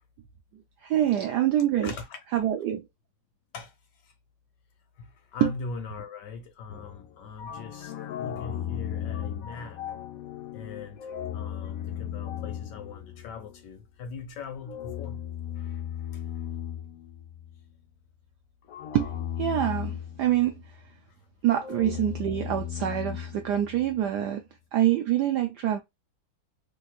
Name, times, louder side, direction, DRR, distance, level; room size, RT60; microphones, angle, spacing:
voice 1, 0.8-1.9 2.3-2.8 5.4-5.5 18.9-19.1 19.4-20.6 21.4-24.4 24.7-25.8, right 12 dB, 85° right, 0.9 m, -25 dB
voice 2, 1.8-2.2 3.5-3.7 4.0-4.1 5.0-9.8 10.5-11.1 11.3-15.2 15.6-16.6, left 4 dB, 60° left, 1.4 m, -41 dB
sound 1, 6.7-13.7 14.6-17.6 18.7-20.8 21.6-24.0, left 10 dB, 85° left, 0.7 m, -36 dB
3.4 x 3.0 x 2.2 m
omnidirectional pair, 2.3 m